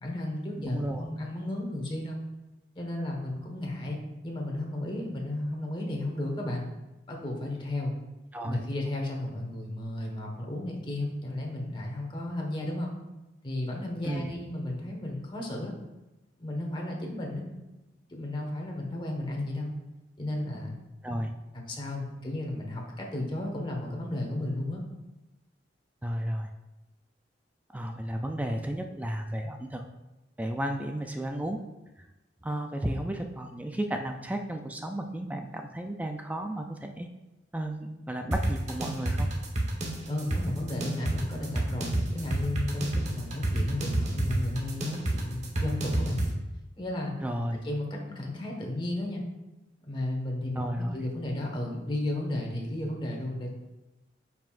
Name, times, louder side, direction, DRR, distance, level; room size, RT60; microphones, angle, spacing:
voice 1, 0.0-2.2 2.7-6.6 7.1-7.9 8.4-12.9 13.4-15.7 16.4-17.4 18.1-19.7 20.2-20.8 21.5-24.8 40.1-46.2 46.8-47.1 47.6-49.2 49.8-53.5, left 1 dB, 25° left, 0 dB, 1.4 m, -33 dB
voice 2, 0.6-1.0 8.3-8.6 14.0-14.3 21.0-21.3 26.0-26.5 27.7-29.8 30.4-31.6 32.0-32.1 32.4-37.1 37.5-39.3 47.2-47.6 50.6-51.0, right 1 dB, 10° right, 4 dB, 0.4 m, -33 dB
sound 1, 38.3-46.3, right 1 dB, 40° right, 1.2 m, -29 dB
9.1 x 5.8 x 2.5 m, 1.0 s
head